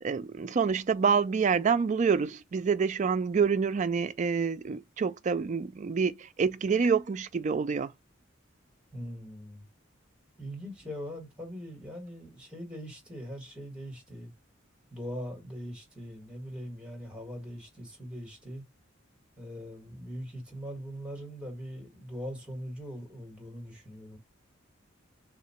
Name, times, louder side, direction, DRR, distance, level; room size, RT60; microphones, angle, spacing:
voice 1, 0.0-7.9, right 5 dB, 40° right, 0.3 m, -27 dB
voice 2, 8.9-9.7 10.4-14.3 14.9-18.6 19.4-24.2, equal, 5° right, 1.8 m, -41 dB
3.6 x 2.9 x 4.3 m
head